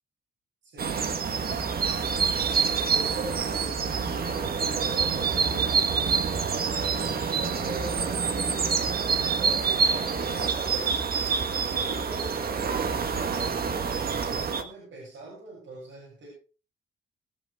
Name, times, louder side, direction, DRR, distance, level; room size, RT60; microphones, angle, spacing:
voice 1, 0.6-1.6 2.7-6.2 6.9-11.0 11.7-16.3, right 2 dB, 65° right, -5 dB, 7.1 m, -41 dB
sound 1, 0.8-14.6, right 5 dB, 45° right, 1.3 m, -27 dB
21.5 x 8.0 x 3.5 m, 0.37 s
wide cardioid pair, 165°, 21 cm